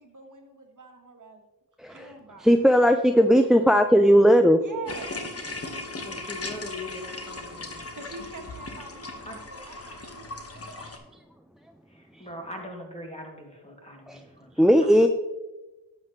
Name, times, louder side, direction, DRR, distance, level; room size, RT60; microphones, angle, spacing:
voice 1, 0.0-1.4 1.9-2.5 4.6-5.4 7.9-10.6, right 3 dB, 45° right, 4 dB, 1.6 m, -44 dB
voice 2, 1.8-2.1 2.4-4.6 10.8-10.9 14.1-14.2 14.6-15.1, equal, ahead, 8 dB, 0.5 m, -18 dB
sound 1, 4.9-11.0, left 2 dB, 30° left, 1.5 m, -38 dB
voice 3, 6.0-7.8 9.2-9.4 11.9-14.5 14.8-15.0, left 1 dB, 15° left, 1 dB, 2.4 m, -41 dB
11.0 x 7.5 x 3.2 m, 1.1 s
supercardioid pair, 50°, 44 cm